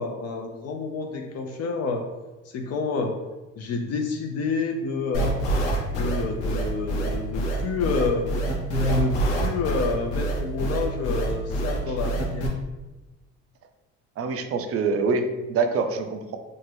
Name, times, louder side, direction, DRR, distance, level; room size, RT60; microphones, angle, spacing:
voice 1, 0.0-2.0 2.4-3.1 3.6-5.4 5.9-8.3 8.9-12.5, left 4 dB, 45° left, 3 dB, 0.4 m, -29 dB
sound 1, 5.1-12.5, right 1 dB, 80° left, 0.7 m, -25 dB
voice 2, 14.2-16.4, right 4 dB, 40° right, 7 dB, 0.4 m, -25 dB
2.6 x 2.4 x 3.2 m, 1.1 s
hypercardioid pair, 60°, 36 cm